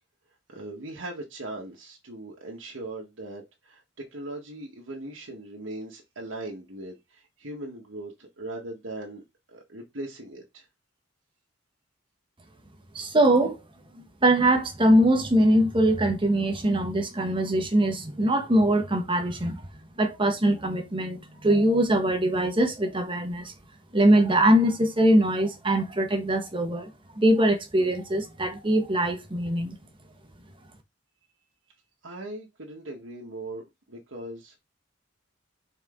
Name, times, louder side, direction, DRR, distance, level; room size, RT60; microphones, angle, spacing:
voice 1, 0.5-9.2 9.5-10.7 32.0-34.6, right 1 dB, 75° right, 1.4 m, -39 dB
voice 2, 12.9-13.6 14.2-19.6 20.0-23.5 23.9-26.9 27.2-29.8, right 1 dB, 25° right, 1.3 m, -22 dB
6.0 x 4.5 x 3.7 m
head